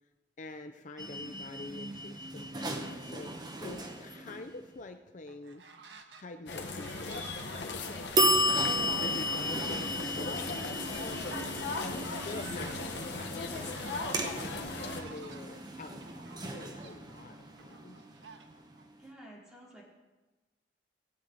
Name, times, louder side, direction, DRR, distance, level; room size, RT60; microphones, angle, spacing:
voice 1, 0.4-5.6 6.2-11.2 11.8-14.5 14.8-16.0 16.4-18.0, left 2 dB, 45° left, 7 dB, 0.5 m, -47 dB
sound 1, 1.0-4.7 8.1-18.8, equal, 25° right, 1.1 m, -34 dB
sound 2, 5.3-6.2 6.5-18.9, right 4 dB, 90° right, 1.1 m, -52 dB
sound 3, 6.5-15.0, left 3 dB, 85° left, 1.2 m, -38 dB
voice 2, 19.0-19.8, right 1 dB, 5° right, -6 dB, 3.7 m, -52 dB
18.5 x 9.0 x 4.1 m, 1.2 s
head